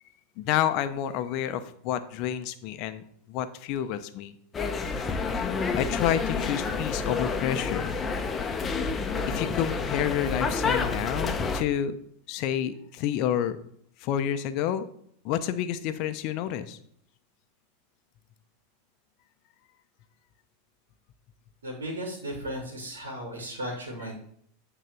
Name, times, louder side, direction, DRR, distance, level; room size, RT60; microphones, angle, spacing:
voice 1, 0.4-4.3 5.8-8.0 9.3-11.9 12.3-13.6 14.0-14.9 15.2-16.8, left 10 dB, 55° left, 11 dB, 0.8 m, -29 dB
sound 1, 4.5-11.6, left 4 dB, 25° left, 1.0 m, -29 dB
voice 2, 21.6-24.1, equal, 85° right, 1 dB, 2.3 m, -35 dB
9.2 x 4.0 x 5.9 m, 0.66 s
hypercardioid pair, 95°, 0 cm